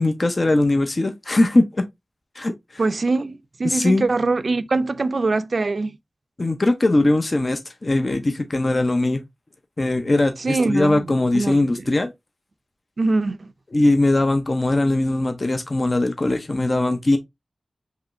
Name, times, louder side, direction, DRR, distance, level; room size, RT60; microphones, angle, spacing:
voice 1, 0.0-1.8 2.4-2.5 3.6-4.0 6.4-9.2 9.8-12.1 13.7-17.2, left 2 dB, 40° left, 0.6 m, -20 dB
voice 2, 2.8-6.0 10.4-11.9 13.0-13.5, right 3 dB, 60° right, 0.4 m, -23 dB
4.9 x 3.1 x 2.5 m
wide cardioid pair, 90°, 0 cm